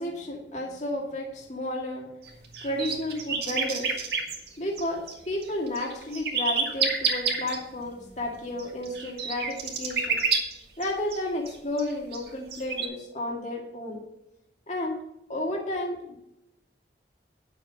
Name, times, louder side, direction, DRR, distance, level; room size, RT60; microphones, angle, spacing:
voice 1, 0.0-2.1 2.6-4.0 4.6-10.2 10.8-14.0 14.7-15.0 15.3-16.2, left 1 dB, 40° left, -1 dB, 2.0 m, -32 dB
sound 1, 2.2-5.1 5.4-7.6 8.6-11.2 11.5-11.6 11.8-12.9, right 5 dB, 65° right, 2.0 m, -29 dB
9.8 x 7.3 x 5.2 m, 0.88 s
head